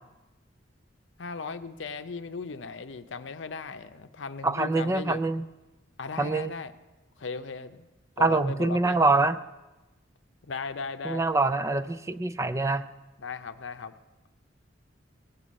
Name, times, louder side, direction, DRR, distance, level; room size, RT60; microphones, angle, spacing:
voice 1, 1.2-5.2 6.0-6.7 7.2-7.9 8.2-9.0 10.4-11.3 13.2-13.9, left 4 dB, 75° left, 10 dB, 0.7 m, -37 dB
voice 2, 4.4-5.4 6.2-6.5 8.2-9.4 11.0-12.9, right 3 dB, 15° right, 11 dB, 0.3 m, -25 dB
18.0 x 6.9 x 7.4 m, 1.1 s
head